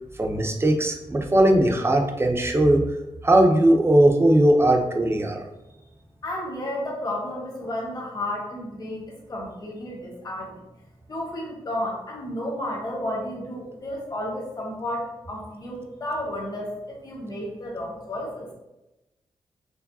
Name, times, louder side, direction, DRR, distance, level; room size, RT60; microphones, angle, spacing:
voice 1, 0.2-2.9 3.2-5.4, right 1 dB, 25° right, 3 dB, 0.6 m, -19 dB
voice 2, 6.2-10.5 11.1-18.5, left 1 dB, 35° left, -3 dB, 1.3 m, -32 dB
4.7 x 3.1 x 2.7 m, 0.97 s
cardioid pair, 85°, 11 cm